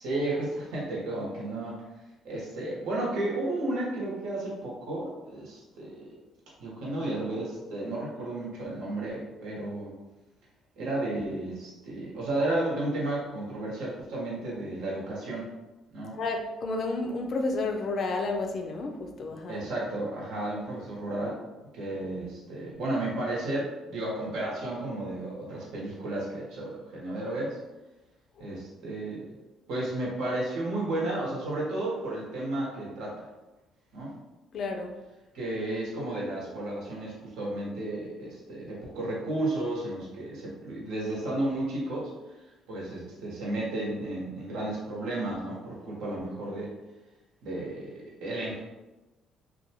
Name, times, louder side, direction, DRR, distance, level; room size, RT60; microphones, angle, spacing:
voice 1, 0.0-1.8 2.2-6.1 6.6-9.9 10.8-15.5 15.9-16.1 19.5-21.4 21.7-27.6 28.4-29.3 29.7-33.3 33.9-34.1 35.3-42.1 42.7-46.7 47.4-48.6, right 1 dB, 80° right, -4 dB, 1.0 m, -33 dB
voice 2, 16.1-19.6 34.5-34.9, left 3 dB, 50° left, 3 dB, 0.4 m, -31 dB
2.6 x 2.2 x 2.8 m, 1.1 s
cardioid pair, 125°, 0 cm